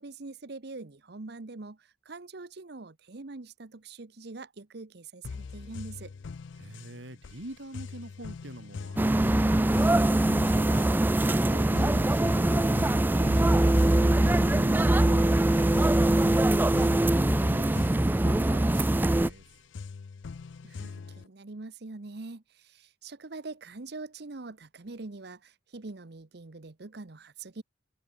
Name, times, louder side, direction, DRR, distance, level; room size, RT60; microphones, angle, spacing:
voice 1, 0.0-6.1 20.6-27.6, right 3 dB, 60° right, 1.0 m, -43 dB
sound 1, 5.2-21.3, left 4 dB, 80° left, 0.5 m, -43 dB
voice 2, 6.6-19.4, right 1 dB, 80° right, 3.6 m, -46 dB
sound 2, 9.0-19.3, right 1 dB, 10° right, 0.3 m, -23 dB
open air
head